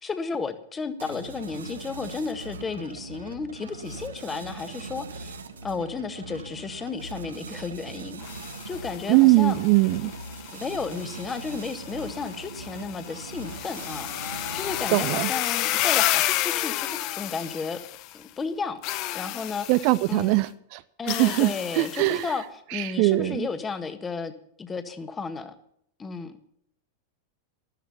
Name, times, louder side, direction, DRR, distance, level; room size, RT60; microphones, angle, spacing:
voice 1, 0.0-5.4 5.6-8.2 8.7-9.6 10.5-17.8 18.1-18.8 19.1-20.4 21.0-24.3 24.6-25.6 26.0-26.4, left 5 dB, 15° left, 1.7 m, -33 dB
sound 1, 1.0-15.2, right 4 dB, 70° right, 1.5 m, -41 dB
sound 2, 8.2-18.2 18.8-20.2 21.1-22.3, left 16 dB, 40° left, 0.8 m, -31 dB
voice 2, 9.1-10.1 14.9-15.3 19.7-20.8 21.1-22.2 22.7-23.5, right 20 dB, 45° right, 0.6 m, -21 dB
13.5 x 13.5 x 5.7 m
figure-of-eight pair, 90°, 0 cm